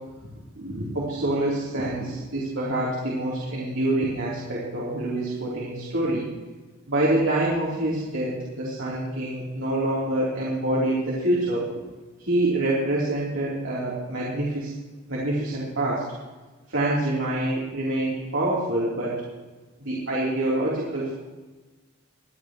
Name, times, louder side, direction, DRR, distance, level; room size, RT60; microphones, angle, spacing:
voice 1, 0.6-6.3 6.9-11.7 12.2-14.7 15.1-16.0 16.7-19.2 19.8-21.1, right 1 dB, 70° right, -7 dB, 3.5 m, -26 dB
25.0 x 9.1 x 3.1 m, 1.2 s
head